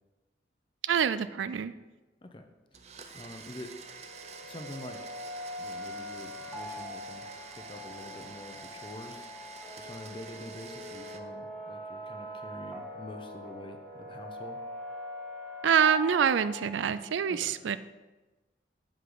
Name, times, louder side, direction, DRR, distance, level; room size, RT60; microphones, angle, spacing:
voice 1, 0.8-1.8 15.6-17.8, right 7 dB, 85° right, 14 dB, 0.4 m, -26 dB
Domestic sounds home sounds, 2.7-11.2, right 5 dB, 35° right, 0.6 m, -48 dB
voice 2, 3.1-3.7 4.5-5.0 5.6-9.3 9.7-14.6 17.3-17.5, left 1 dB, 25° left, 6 dB, 0.8 m, -46 dB
sound 1, 3.6-16.9, left 1 dB, 5° right, 1.9 m, -43 dB
8.2 x 7.6 x 3.9 m, 1.1 s
head